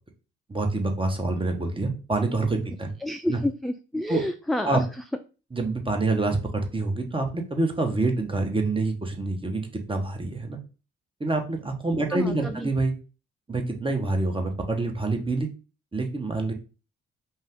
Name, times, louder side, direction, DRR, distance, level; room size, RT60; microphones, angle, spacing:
voice 1, 0.5-2.9 3.3-3.4 4.1-4.2 4.6-4.8 5.5-10.6 11.2-12.9 13.5-15.5 15.9-16.5, right 2 dB, 15° right, 3 dB, 1.3 m, -26 dB
voice 2, 3.0-4.8 12.1-12.7, left 1 dB, ahead, 6 dB, 0.3 m, -29 dB
5.5 x 2.3 x 3.7 m, 0.34 s
figure-of-eight pair, 40°, 31 cm